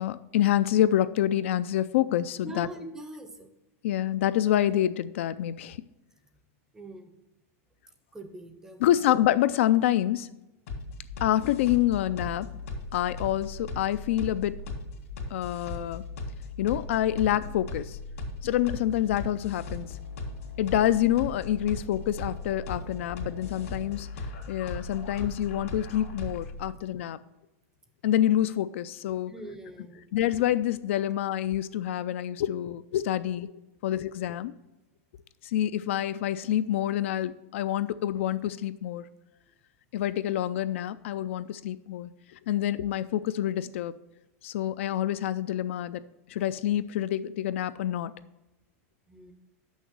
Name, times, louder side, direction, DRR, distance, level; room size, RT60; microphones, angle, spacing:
voice 1, 0.0-2.7 3.8-5.8 8.8-10.3 11.2-12.5 12.9-14.5 15.3-16.0 16.6-18.0 18.4-19.9 20.6-24.1 24.5-27.2 28.0-29.3 30.1-33.5 33.8-34.5 35.5-39.0 39.9-42.1 42.5-43.9 44.4-46.0 46.3-48.1, left 12 dB, 60° left, 14 dB, 0.4 m, -27 dB
voice 2, 2.4-3.5 6.7-7.1 8.1-9.0 29.3-30.0 49.1-49.3, right 1 dB, 5° right, 7 dB, 0.6 m, -42 dB
sound 1, 10.7-26.6, left 3 dB, 75° left, 2.2 m, -38 dB
6.3 x 6.0 x 6.8 m, 1.0 s
supercardioid pair, 175°, 8 cm